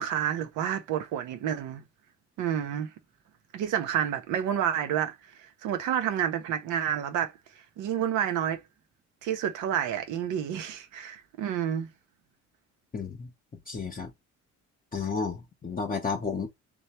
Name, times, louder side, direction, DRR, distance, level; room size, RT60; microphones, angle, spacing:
voice 1, 0.0-1.8 2.4-2.9 3.5-7.3 7.8-8.6 9.2-11.9, right 9 dB, 90° right, 0.7 m, -29 dB
voice 2, 12.9-13.3 13.7-14.1 14.9-16.5, left 5 dB, 30° left, 0.8 m, -32 dB
3.2 x 2.2 x 4.2 m
cardioid pair, 90°, 30 cm